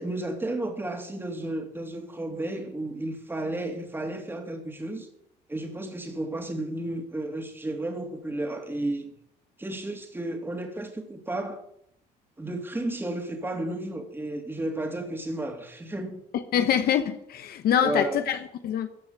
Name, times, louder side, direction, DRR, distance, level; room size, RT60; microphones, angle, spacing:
voice 1, 0.0-5.1 5.5-9.1 9.6-11.6 12.4-16.2 17.8-18.2, right 1 dB, 15° right, 3.1 m, -32 dB
voice 2, 16.5-18.4 18.6-18.9, left 9 dB, 65° left, 1.2 m, -24 dB
15.5 x 5.8 x 9.7 m
cardioid pair, 110°, 17 cm